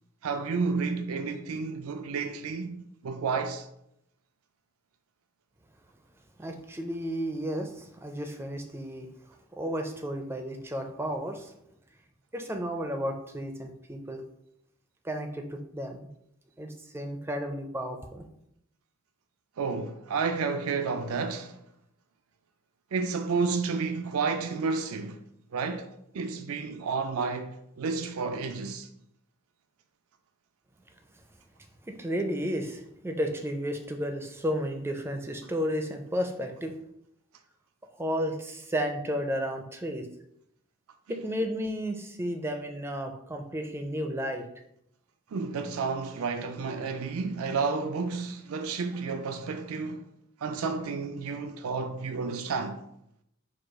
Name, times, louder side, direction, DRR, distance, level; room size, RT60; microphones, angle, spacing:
voice 1, 0.2-3.7 19.6-21.6 22.9-25.2 25.5-25.9 26.1-28.9 41.1-41.2 45.3-50.1 50.4-52.8, right 4 dB, 85° right, 0.4 m, -31 dB
voice 2, 6.4-11.5 12.3-14.2 15.0-16.1 16.6-18.3 31.8-36.8 37.9-40.1 41.1-44.4, equal, 10° right, 0.4 m, -33 dB
4.8 x 2.3 x 4.7 m
head